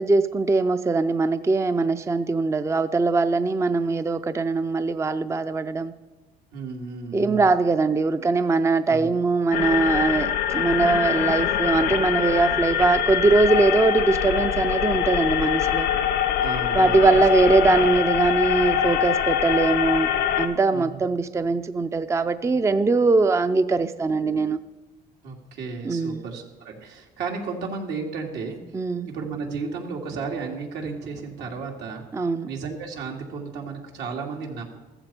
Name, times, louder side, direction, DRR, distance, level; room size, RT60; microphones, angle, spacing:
voice 1, 0.0-5.9 7.1-15.9 16.8-20.1 20.4-24.6 25.8-26.2 28.7-29.1 32.1-32.5, right 3 dB, 15° right, 0.5 m, -21 dB
voice 2, 6.5-7.5 8.9-9.1 16.4-17.0 20.7-21.0 25.2-28.6 29.0-32.1 32.4-34.6, right 4 dB, 80° right, 2.8 m, -33 dB
sound 1, 9.5-20.5, left 10 dB, 85° left, 1.0 m, -24 dB
14.5 x 14.5 x 4.5 m
cardioid pair, 110°, 17 cm